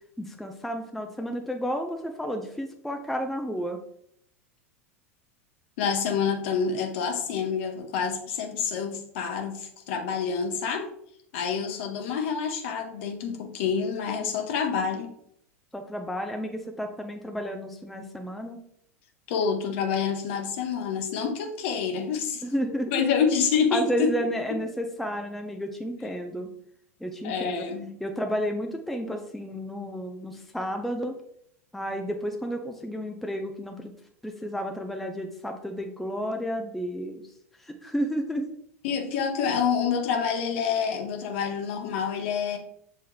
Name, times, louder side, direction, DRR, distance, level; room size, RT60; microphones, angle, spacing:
voice 1, 0.2-3.8 15.7-18.6 22.4-23.0 23.7-26.5 27.0-27.6 28.0-31.1 31.7-33.9 34.2-37.2 37.6-38.5, equal, ahead, 4 dB, 0.5 m, -31 dB
voice 2, 5.8-10.9 11.3-15.1 19.3-22.4 22.9-24.1 27.2-27.9 38.8-42.6, left 6 dB, 55° left, 3 dB, 0.9 m, -27 dB
6.9 x 3.2 x 2.3 m, 0.69 s
figure-of-eight pair, 85°, 8 cm